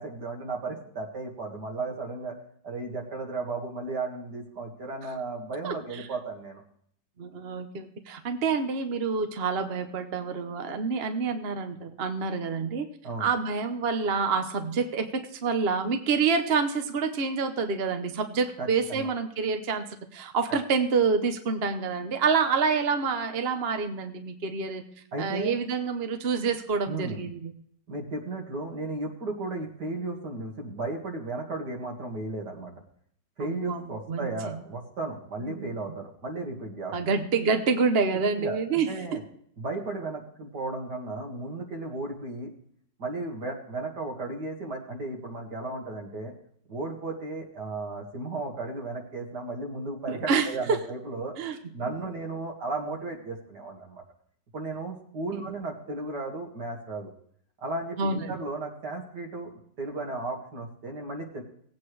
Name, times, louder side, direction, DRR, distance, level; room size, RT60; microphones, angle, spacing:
voice 1, 0.0-2.3 2.6-6.6 13.0-13.3 18.6-19.1 25.1-25.5 26.9-27.2 27.9-32.7 33.4-36.9 38.4-39.2 39.6-42.5 43.0-46.3 46.7-51.3 51.7-54.0 54.5-57.1 57.6-61.4, right 2 dB, 70° right, 1 dB, 2.5 m, -35 dB
voice 2, 5.6-6.1 7.2-12.9 13.2-24.8 25.2-27.5 33.4-34.5 35.4-35.7 36.9-39.2 50.1-50.8 51.4-51.6 55.3-55.4 58.0-58.3, right 5 dB, 45° right, 7 dB, 0.9 m, -27 dB
19.0 x 8.6 x 3.2 m, 0.64 s
omnidirectional pair, 1.9 m